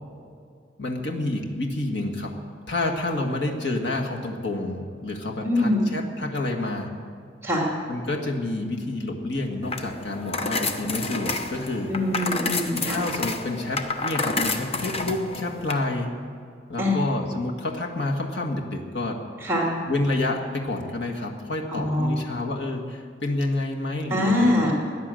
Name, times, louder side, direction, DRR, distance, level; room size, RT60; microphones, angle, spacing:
voice 1, 0.8-2.3 2.7-6.9 7.9-11.9 12.9-16.1 16.7-19.2 19.9-24.7, left 2 dB, 70° left, 1 dB, 1.7 m, -29 dB
voice 2, 5.4-5.8 7.4-7.6 11.9-13.0 16.8-17.0 19.4-19.7 21.7-22.1 24.1-24.7, left 1 dB, 15° right, -2 dB, 2.7 m, -23 dB
sound 1, 9.6-15.7, left 3 dB, 35° left, 0.9 m, -29 dB
16.5 x 10.5 x 7.7 m, 2.3 s
head